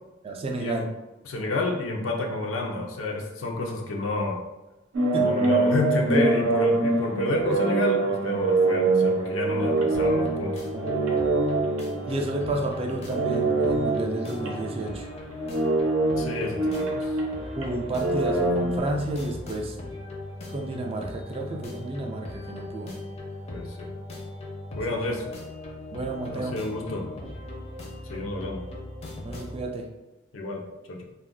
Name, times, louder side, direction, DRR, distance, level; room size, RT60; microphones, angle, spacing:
voice 1, 0.2-0.9 5.1-5.4 10.7-10.8 12.1-15.1 17.6-19.8 20.5-23.0 24.9-25.0 25.9-26.6 27.2-27.3 29.2-29.9, right 2 dB, 30° right, 2 dB, 0.3 m, -31 dB
voice 2, 1.3-4.4 5.1-10.6 16.2-17.1 23.5-23.9 24.7-25.2 26.3-27.1 28.1-28.6 30.3-31.0, left 2 dB, 80° left, 1 dB, 0.5 m, -29 dB
sound 1, 4.9-12.7 13.0-18.8, right 2 dB, 85° right, 0.6 m, -25 dB
sound 2, 9.9-29.6, left 2 dB, 30° left, 0.5 m, -39 dB
2.3 x 2.2 x 3.6 m, 1.0 s
head